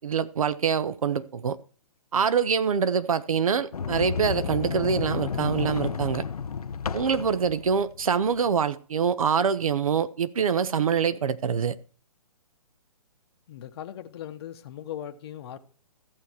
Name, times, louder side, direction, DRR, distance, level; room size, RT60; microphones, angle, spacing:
voice 1, 0.0-1.6 2.1-6.2 6.9-11.8, right 6 dB, 65° right, 1.0 m, -25 dB
Sliding door, 3.7-8.6, left 6 dB, 75° left, 0.7 m, -31 dB
voice 2, 13.5-15.6, left 10 dB, 45° left, 1.0 m, -39 dB
14.0 x 6.9 x 4.6 m
figure-of-eight pair, 135°, 19 cm